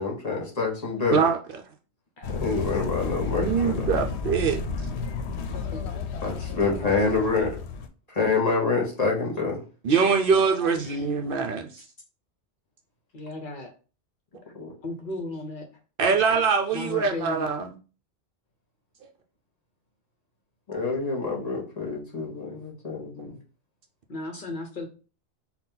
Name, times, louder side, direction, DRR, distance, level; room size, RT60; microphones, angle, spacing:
voice 1, 0.0-1.2 2.3-3.8 6.2-7.5 8.1-9.6 14.5-14.7 20.7-23.4, left 4 dB, 40° left, -2 dB, 1.2 m, -27 dB
sound 1, 2.2-7.9, left 5 dB, 80° left, 0.8 m, -32 dB
voice 2, 2.2-2.5 5.7-7.5 10.8-11.1 13.1-13.7 14.8-15.7 16.7-17.5 24.1-24.9, left 2 dB, 55° left, 2 dB, 0.8 m, -37 dB
voice 3, 3.4-4.6 9.8-11.7 16.0-17.7, right 5 dB, 60° right, 4 dB, 0.7 m, -23 dB
4.1 x 2.2 x 3.8 m, 0.35 s
omnidirectional pair, 1.1 m